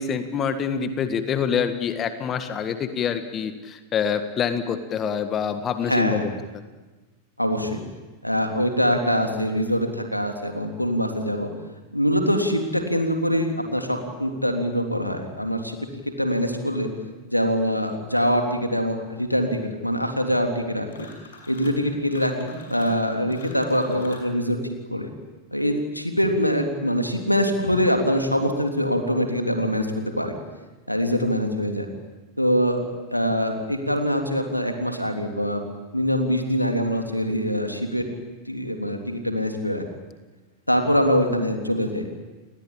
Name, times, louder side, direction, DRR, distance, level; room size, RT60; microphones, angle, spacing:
voice 1, 0.0-6.2 6.5-6.6, left 7 dB, 30° left, 10 dB, 1.7 m, -26 dB
voice 2, 5.9-6.2 7.4-7.8 8.2-11.5 11.9-15.8 16.0-16.9 17.3-21.1 21.5-24.6 24.9-25.1 25.5-29.9 30.2-30.3 30.9-31.9 32.4-32.8 33.1-35.6 35.9-38.0 38.5-39.8 40.7-42.1, equal, 90° left, 4 dB, 3.4 m, -24 dB
sound 1, 20.9-21.8 22.1-24.3, left 3 dB, 65° left, 5.9 m, -46 dB
30.0 x 20.5 x 8.9 m, 1.2 s
figure-of-eight pair, 90°, 0 cm